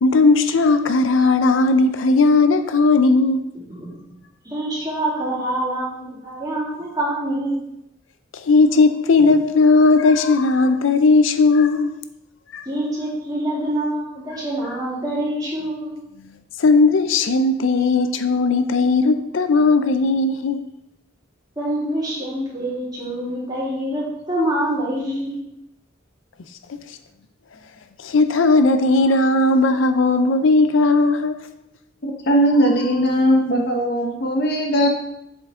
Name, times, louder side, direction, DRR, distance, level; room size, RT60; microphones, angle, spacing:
voice 1, 0.0-3.4 8.3-11.9 12.5-12.7 16.6-20.6 28.0-31.5, left 3 dB, 80° left, 0.5 m, -17 dB
voice 2, 3.7-4.1 4.4-7.6 9.2-9.3 12.6-15.9 21.6-25.4, right 1 dB, 20° right, 3.1 m, -26 dB
voice 3, 32.0-34.9, equal, 55° left, 1.1 m, -19 dB
7.7 x 7.1 x 3.7 m
head